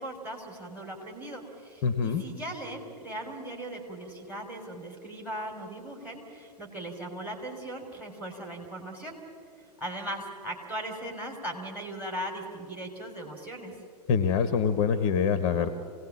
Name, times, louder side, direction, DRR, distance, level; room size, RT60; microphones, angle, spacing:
voice 1, 0.0-9.2 9.6-13.8, right 1 dB, 5° right, 4 dB, 3.3 m, -38 dB
voice 2, 1.8-2.2 14.1-15.7, left 6 dB, 35° left, 12 dB, 1.0 m, -25 dB
27.0 x 17.5 x 7.2 m, 2.4 s
figure-of-eight pair, 105°, 21 cm